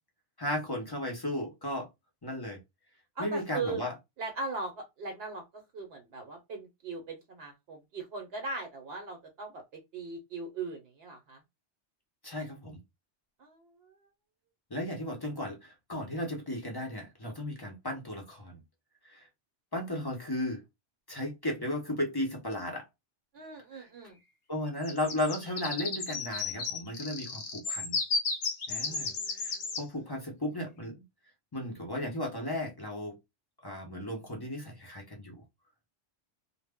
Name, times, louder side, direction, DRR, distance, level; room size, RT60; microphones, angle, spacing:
voice 1, 0.4-1.9 2.2-2.6 3.2-3.9 12.2-12.8 14.7-18.6 19.0-19.3 19.7-20.6 21.1-22.8 23.7-23.9 24.5-28.0 28.7-31.0 31.5-33.2 33.6-35.4, left 1 dB, 25° left, 0.5 m, -35 dB
voice 2, 3.2-3.8 4.2-5.4 5.7-9.6 9.9-11.4 13.4-13.7 23.3-24.2 28.8-29.8, right 3 dB, 65° right, 0.8 m, -39 dB
sound 1, 24.8-29.8, left 4 dB, 65° left, 0.8 m, -34 dB
2.1 x 2.0 x 3.4 m
omnidirectional pair, 1.2 m